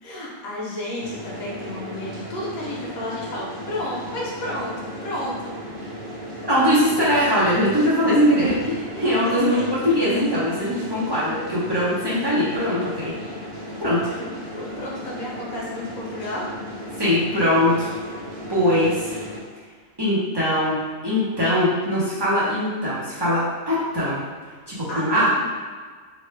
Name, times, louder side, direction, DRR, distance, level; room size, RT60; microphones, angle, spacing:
voice 1, 0.0-5.5 9.1-9.9 14.2-14.3 14.6-16.5 24.9-25.5, left 1 dB, 85° left, -5 dB, 1.2 m, -32 dB
sound 1, 1.0-19.4, equal, 55° right, 0.8 m, -35 dB
voice 2, 6.5-13.1 13.8-14.1 17.0-17.9 18.5-19.1 20.0-20.7 21.0-24.2 24.7-25.3, equal, 25° right, -10 dB, 0.7 m, -21 dB
3.1 x 2.1 x 3.1 m, 1.5 s
omnidirectional pair, 1.4 m